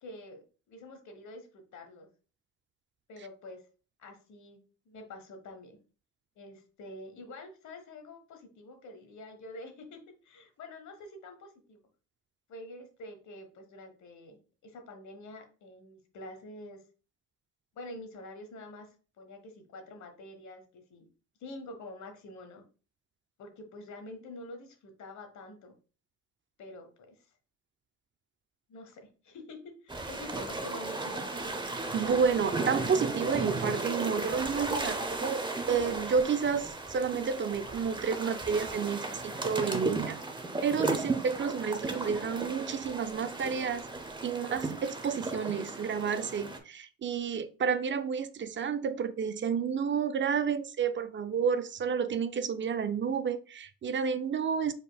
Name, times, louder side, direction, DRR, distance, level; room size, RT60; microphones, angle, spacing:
voice 1, 0.0-2.1 3.1-3.6 4.0-5.8 6.4-11.8 12.5-16.8 17.7-21.1 21.4-22.6 23.4-25.7 26.6-27.3 28.7-31.2, left 1 dB, 70° left, 6 dB, 1.3 m, -47 dB
sound 1, 29.9-46.6, right 2 dB, 15° right, 0.8 m, -35 dB
voice 2, 31.9-40.2 40.6-43.8 44.2-54.7, right 6 dB, 40° right, 11 dB, 0.5 m, -30 dB
5.3 x 4.3 x 2.3 m, 0.37 s
cardioid pair, 90°, 30 cm